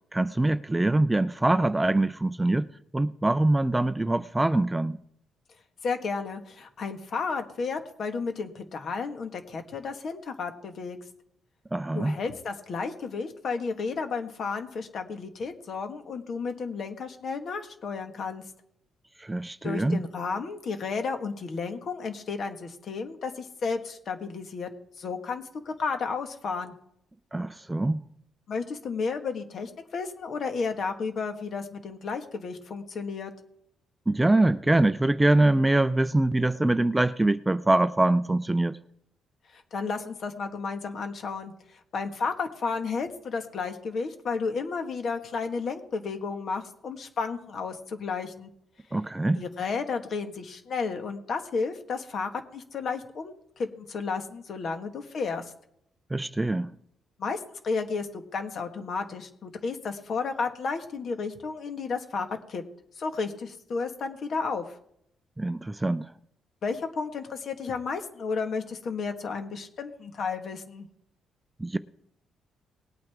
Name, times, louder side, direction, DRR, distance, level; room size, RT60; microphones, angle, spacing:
voice 1, 0.1-2.7 2.9-5.0 11.7-12.2 19.2-20.0 27.3-28.0 34.1-38.8 48.9-49.4 56.1-56.7 65.4-66.1 71.6-71.8, right 2 dB, 10° right, 0.4 m, -24 dB
voice 2, 5.8-11.0 11.9-18.4 19.6-24.7 25.0-26.7 28.5-33.3 39.5-48.5 49.3-55.4 57.2-62.6 63.0-64.6 66.6-70.9, left 4 dB, 55° left, 1.6 m, -32 dB
19.5 x 8.6 x 3.6 m
cardioid pair, 90°, 0 cm